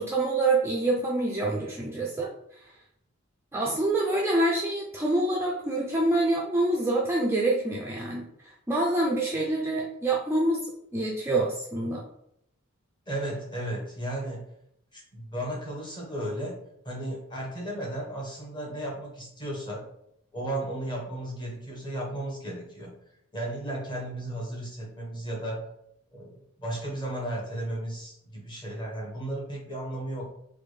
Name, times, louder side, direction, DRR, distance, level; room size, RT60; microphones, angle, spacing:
voice 1, 0.0-2.3 2.6-2.7 3.5-12.0, right 2 dB, 10° right, -3 dB, 0.3 m, -26 dB
voice 2, 13.1-14.4 14.9-16.6 16.8-19.8 20.3-22.9 23.3-25.7 26.1-30.2, right 1 dB, 20° left, -2 dB, 0.9 m, -34 dB
3.4 x 2.2 x 3.2 m, 0.74 s
head